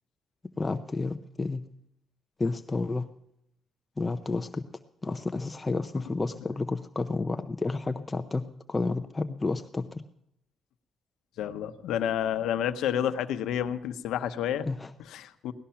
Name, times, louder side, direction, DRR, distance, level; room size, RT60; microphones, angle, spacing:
voice 1, 0.6-1.7 2.4-3.1 4.0-4.6 5.0-10.0 14.7-14.9, left 3 dB, 20° left, 8 dB, 0.6 m, -31 dB
voice 2, 11.4-14.7 15.0-15.5, left 10 dB, 85° left, 9 dB, 0.9 m, -30 dB
18.0 x 13.0 x 5.8 m, 0.81 s
cardioid pair, 90°, 0 cm